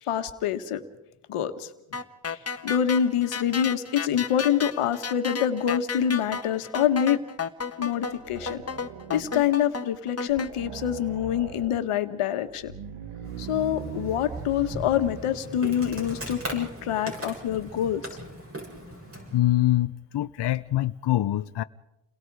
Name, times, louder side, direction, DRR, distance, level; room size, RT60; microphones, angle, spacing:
voice 1, 0.0-0.8 1.3-1.7 2.3-7.2 7.8-8.6 9.1-12.7 13.4-18.0, left 9 dB, 85° left, 8 dB, 1.7 m, -26 dB
sound 1, 1.9-10.5, left 5 dB, 30° left, 1.5 m, -33 dB
sound 2, 8.1-9.6 9.9-10.0 10.3-11.9 12.5-15.6, right 7 dB, 80° right, 1.8 m, -40 dB
Insect, 13.2-19.4, right 1 dB, 25° right, 7.2 m, -39 dB
voice 2, 19.3-21.6, left 14 dB, 55° left, 11 dB, 0.7 m, -24 dB
30.0 x 21.5 x 4.9 m, 0.91 s
cardioid pair, 85°, 50 cm